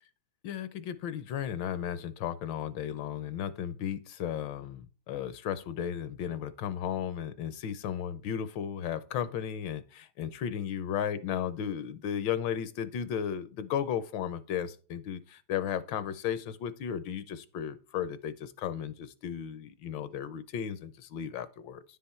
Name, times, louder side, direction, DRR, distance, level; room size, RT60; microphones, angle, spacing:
voice 1, 0.4-21.8, left 9 dB, 75° left, 14 dB, 1.3 m, -35 dB
10.0 x 5.6 x 4.3 m, 0.37 s
omnidirectional pair, 2.2 m